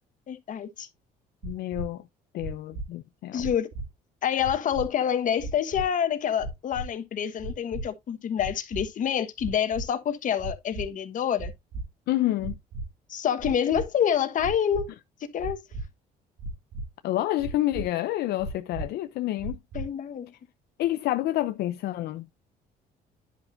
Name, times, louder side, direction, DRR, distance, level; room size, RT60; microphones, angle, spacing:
voice 1, 0.3-0.9 3.3-3.7 4.2-11.5 13.1-14.9 15.3-15.6 19.7-20.3, left 9 dB, 50° left, 1.3 m, -27 dB
voice 2, 1.4-2.0 2.3-3.5 12.1-12.6 17.0-19.6 20.8-22.3, left 15 dB, 75° left, 0.6 m, -28 dB
sound 1, 1.4-1.8 2.4-2.8 3.4-3.8 4.4-4.9 5.4-5.8 6.4-6.9 7.4-7.8 8.4-8.8 9.4-9.8 10.4-10.9 11.4-11.8 12.4-12.8 13.4-13.8 14.4-14.8 15.4-15.8 16.4-16.8 17.4-17.8 18.4-18.8 19.4-19.8, right 2 dB, 70° right, 3.0 m, -35 dB
10.5 x 5.9 x 2.6 m
cardioid pair, 110°, 17 cm